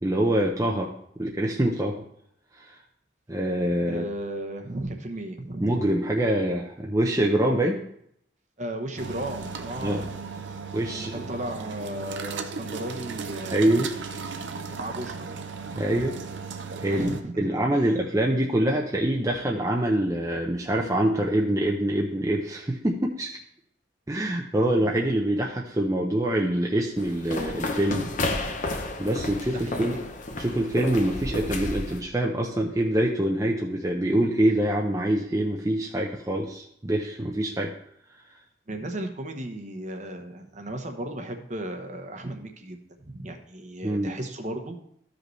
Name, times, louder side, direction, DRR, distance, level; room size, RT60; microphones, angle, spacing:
voice 1, 0.0-0.9 1.2-2.0 2.6-2.8 3.3-4.0 5.6-7.8 9.8-10.0 10.7-11.1 13.5-13.9 15.8-16.1 16.8-23.4 24.1-28.1 29.0-30.0 30.4-37.7 43.8-44.1, right 1 dB, 15° right, -1 dB, 0.6 m, -25 dB
voice 2, 3.9-5.8 8.6-10.1 10.9-13.7 14.7-15.3 16.9-18.0 29.5-30.0 38.7-44.8, right 1 dB, 40° right, 5 dB, 0.9 m, -35 dB
sound 1, 9.0-17.2, right 5 dB, 75° right, 0.7 m, -36 dB
sound 2, 27.0-32.0, left 2 dB, 40° left, 0.8 m, -32 dB
13.5 x 5.2 x 3.2 m, 0.71 s
head